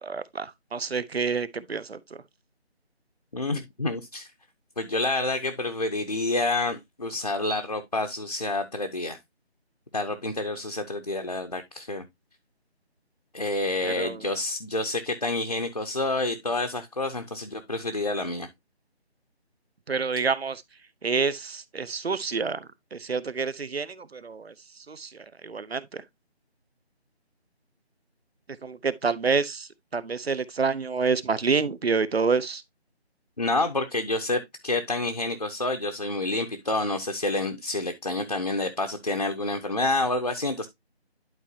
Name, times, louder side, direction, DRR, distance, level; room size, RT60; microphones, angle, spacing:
voice 1, 0.0-2.0 13.8-14.2 19.9-20.6 21.0-22.6 22.9-24.5 24.9-25.1 25.4-26.0 28.6-29.7 29.9-32.6, right 5 dB, 65° right, 0.8 m, -27 dB
voice 2, 3.3-4.3 4.8-9.2 9.9-12.0 13.3-18.5 33.4-40.7, left 2 dB, 40° left, 0.7 m, -28 dB
11.0 x 4.5 x 2.7 m
figure-of-eight pair, 175°, 33 cm